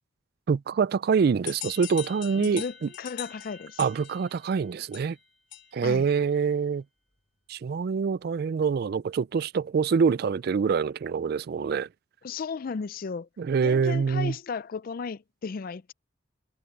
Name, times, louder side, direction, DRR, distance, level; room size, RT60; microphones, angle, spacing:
voice 1, 0.5-2.9 3.8-5.2 5.7-6.8 7.5-11.9 13.4-14.3, right 5 dB, 55° right, 0.3 m, -25 dB
sound 1, 1.5-6.0, left 11 dB, 65° left, 4.2 m, -42 dB
voice 2, 2.3-3.8 5.8-6.1 12.2-13.3 13.6-15.9, left 5 dB, 50° left, 0.4 m, -35 dB
head